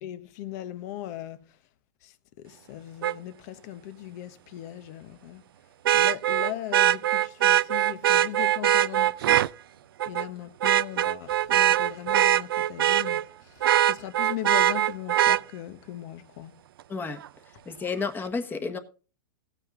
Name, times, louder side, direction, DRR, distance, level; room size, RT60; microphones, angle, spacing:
voice 1, 0.0-1.6 2.0-5.4 5.9-9.5 10.1-16.6, left 13 dB, 50° left, 1.2 m, -39 dB
Vehicle horn car horn honking, 3.0-3.1 5.8-9.5 10.0-10.3 10.6-13.2 13.6-15.4 17.2-17.3, right 12 dB, 85° right, 0.5 m, -22 dB
voice 2, 16.9-17.2 17.6-18.8, left 4 dB, 15° left, 1.4 m, -31 dB
15.5 x 8.9 x 3.8 m
supercardioid pair, 140°, 12 cm